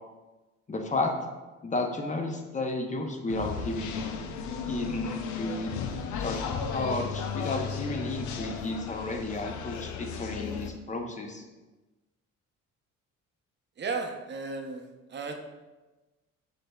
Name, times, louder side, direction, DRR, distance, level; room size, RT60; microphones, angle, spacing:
voice 1, 0.7-1.1 1.6-4.3 4.7-5.7 6.2-11.4, left 2 dB, 25° left, 3 dB, 0.6 m, -32 dB
sound 1, 3.3-10.7, left 6 dB, 75° left, 0.5 m, -35 dB
voice 2, 13.8-15.4, right 4 dB, 35° right, 4 dB, 0.6 m, -35 dB
6.1 x 3.3 x 2.2 m, 1.2 s
cardioid pair, 90°, 30 cm